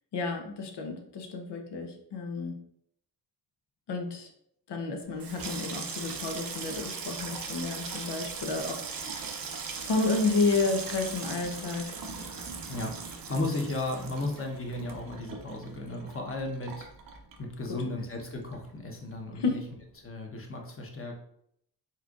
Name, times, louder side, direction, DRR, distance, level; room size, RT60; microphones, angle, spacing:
voice 1, 0.1-2.5 3.9-4.3 4.7-9.4 9.8-11.9 17.7-17.8 19.4-19.6, left 3 dB, 70° left, 4 dB, 0.9 m, -31 dB
Water tap faucet / Sink (filling or washing), 5.0-17.9 18.2-18.8 19.1-19.4, right 5 dB, 55° right, 0.8 m, -39 dB
voice 2, 13.3-16.9 17.4-19.6 20.0-21.2, left 2 dB, 30° left, 1 dB, 1.1 m, -34 dB
4.3 x 3.7 x 2.5 m, 0.71 s
cardioid pair, 80°, 42 cm